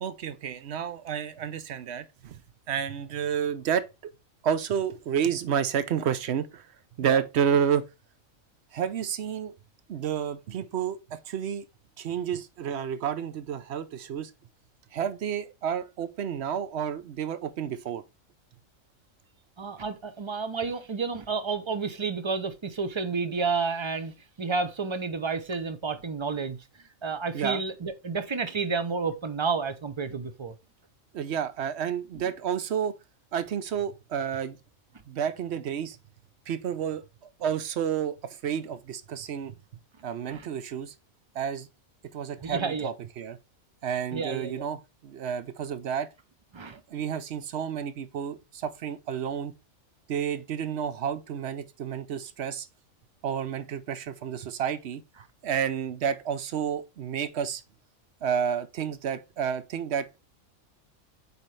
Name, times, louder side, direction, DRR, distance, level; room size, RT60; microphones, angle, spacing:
voice 1, 0.0-2.4 2.7-3.9 4.4-6.7 7.0-7.8 8.7-9.5 9.9-11.7 12.0-14.3 14.9-18.0 27.3-27.6 31.1-33.0 33.3-34.6 35.1-36.0 36.5-37.0 37.4-39.5 40.0-40.9 41.3-41.7 42.1-43.4 43.8-46.1 46.9-49.5 50.1-52.7 53.2-55.0 55.4-57.6 58.2-60.2, right 8 dB, 55° right, 0.9 m, -30 dB
voice 2, 19.6-26.6 27.0-30.5 40.3-40.5 42.4-42.9 44.1-44.6 46.5-46.8, right 4 dB, 30° right, 0.5 m, -30 dB
8.2 x 4.4 x 3.2 m
omnidirectional pair, 1.4 m